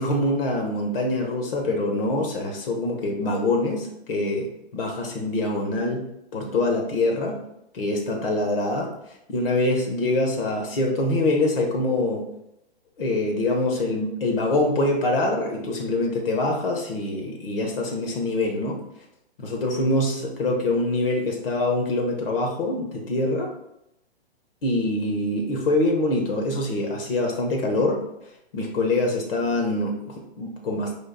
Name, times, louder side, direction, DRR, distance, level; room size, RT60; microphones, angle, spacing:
voice 1, 0.0-6.0 6.3-7.4 7.7-8.9 9.3-12.3 13.0-18.8 19.4-23.5 24.6-28.0 28.5-30.9, left 2 dB, 60° left, 2 dB, 1.1 m, -24 dB
5.0 x 2.5 x 4.0 m, 0.82 s
hypercardioid pair, 145°, 32 cm